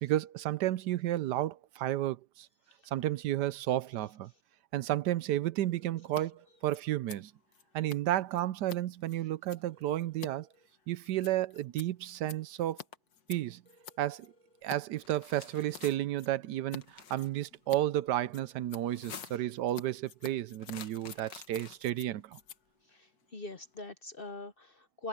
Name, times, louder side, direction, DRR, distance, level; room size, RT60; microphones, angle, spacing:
voice 1, 0.0-2.5 2.9-4.3 4.7-7.3 7.7-10.5 10.9-12.8 13.3-13.6 14.0-14.3 14.6-22.4, right 13 dB, 80° right, 1.2 m, -32 dB
sound 1, 5.7-6.7 9.7-10.7 13.7-14.7 17.7-18.7, right 1 dB, 50° right, 6.8 m, -64 dB
Scissors, 6.0-6.2 6.5-14.8 15.1-15.9 16.2-16.8 17.1-23.9, left 8 dB, 65° left, 1.7 m, -51 dB
sound 2, 15.0-16.0 16.8-17.3 18.8-19.5 20.6-22.0, left 8 dB, 85° left, 2.0 m, -49 dB
voice 2, 22.9-25.1, left 2 dB, 45° left, 0.8 m, -43 dB
omnidirectional pair, 1.8 m